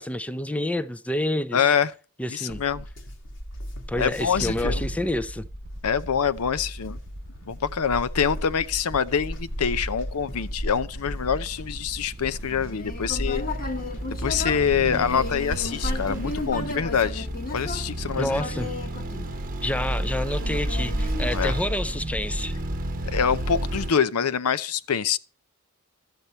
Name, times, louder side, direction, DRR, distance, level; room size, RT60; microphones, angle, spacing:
voice 1, 0.0-1.6 2.2-2.6 3.9-5.5 18.2-18.7 19.6-22.5, left 1 dB, 5° left, 0.5 m, -28 dB
voice 2, 1.5-1.9 2.3-2.9 4.0-4.8 5.8-7.0 7.5-13.4 14.2-17.3 17.5-18.4 21.3-21.5 23.1-25.2, left 7 dB, 75° left, 0.6 m, -25 dB
sound 1, 2.5-21.6, equal, 60° left, 1.5 m, -36 dB
sound 2, 4.2-23.9, right 1 dB, 40° right, 0.9 m, -33 dB
Human voice, 12.5-19.8 20.4-21.8, left 3 dB, 40° left, 1.2 m, -35 dB
12.0 x 8.2 x 4.2 m
head